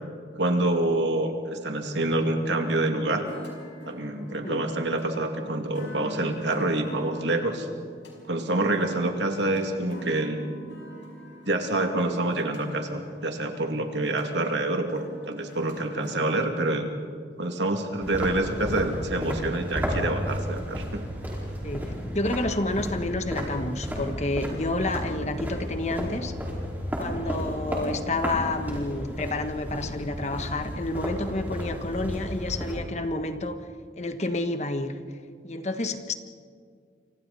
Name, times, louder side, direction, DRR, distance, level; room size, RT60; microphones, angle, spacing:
voice 1, 0.3-3.2 3.9-7.7 8.3-10.4 11.5-16.9 17.4-21.0, right 2 dB, 75° right, 4 dB, 2.5 m, -27 dB
sound 1, 2.8-16.3, equal, 75° left, 5.4 m, -45 dB
sound 2, 18.0-32.8, equal, 10° right, 4.6 m, -33 dB
voice 2, 21.6-26.3 27.0-33.7 34.0-35.0 35.4-36.1, left 2 dB, 40° left, 8 dB, 1.3 m, -30 dB
29.0 x 25.0 x 4.2 m, 2.1 s
head